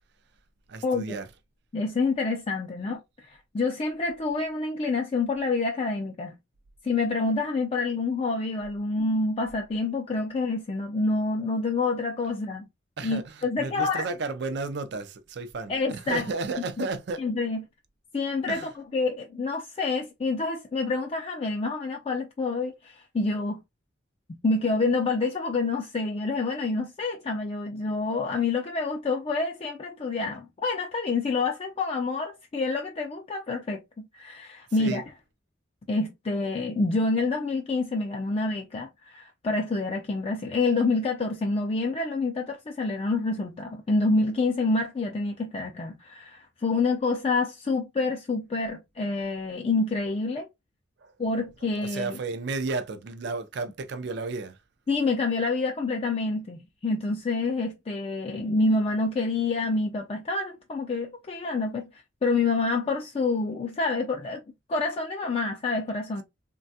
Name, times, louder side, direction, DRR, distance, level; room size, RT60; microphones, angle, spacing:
voice 1, 0.7-1.3 13.0-17.2 18.5-18.7 34.8-35.0 51.0-51.1 51.8-54.6, right 3 dB, 65° right, 0.4 m, -33 dB
voice 2, 1.7-3.0 3.3-6.4 6.8-12.7 13.0-14.0 15.7-16.2 16.8-16.9 17.2-17.6 18.1-23.6 24.3-35.0 35.9-50.5 51.2-52.2 54.9-64.4 64.7-66.2, left 3 dB, 30° left, 0.4 m, -27 dB
3.2 x 2.2 x 2.6 m
head